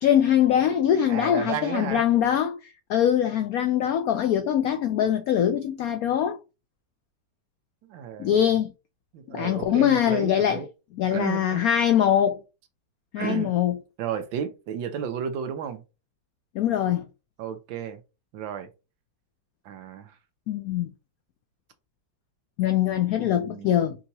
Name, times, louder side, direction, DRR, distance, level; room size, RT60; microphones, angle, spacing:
voice 1, 0.0-2.6 2.9-6.4 8.2-8.7 9.3-10.6 11.0-12.4 13.1-13.8 16.5-17.0 20.5-20.9 22.6-24.0, left 10 dB, 90° left, 0.7 m, -22 dB
voice 2, 1.1-2.1 7.8-8.4 9.1-10.7 11.1-11.6 13.2-13.6 14.0-15.8 17.4-18.0 18.3-18.7 19.6-20.2 23.2-24.0, right 8 dB, 75° right, 1.4 m, -33 dB
5.5 x 2.9 x 2.7 m
omnidirectional pair, 2.1 m